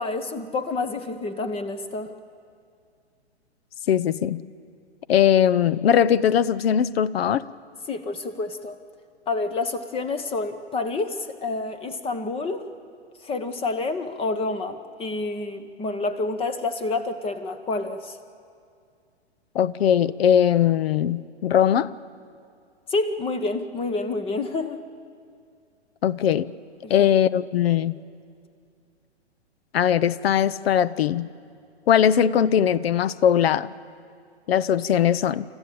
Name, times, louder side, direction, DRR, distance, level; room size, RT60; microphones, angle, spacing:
voice 1, 0.0-2.1 7.9-8.8 9.3-12.7 13.2-18.2 22.9-24.8 26.8-27.1, left 3 dB, 15° left, 10 dB, 1.1 m, -28 dB
voice 2, 3.9-4.4 5.1-7.4 19.5-21.9 26.0-26.5 26.9-28.0 29.7-31.3 31.9-33.7 34.5-35.4, left 9 dB, 60° left, 18 dB, 0.7 m, -20 dB
28.0 x 14.5 x 8.6 m, 2.4 s
hypercardioid pair, 115°, 34 cm